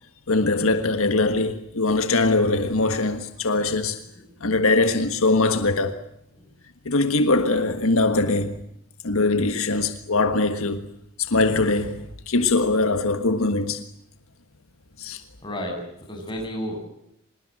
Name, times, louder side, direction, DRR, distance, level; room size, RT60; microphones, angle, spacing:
voice 1, 0.3-4.0 4.4-6.0 6.8-8.6 9.0-10.8 11.2-13.8 15.0-15.2, left 3 dB, 75° left, 1.5 m, -22 dB
voice 2, 15.4-16.9, equal, 20° left, 7.8 m, -33 dB
25.5 x 21.0 x 7.8 m
head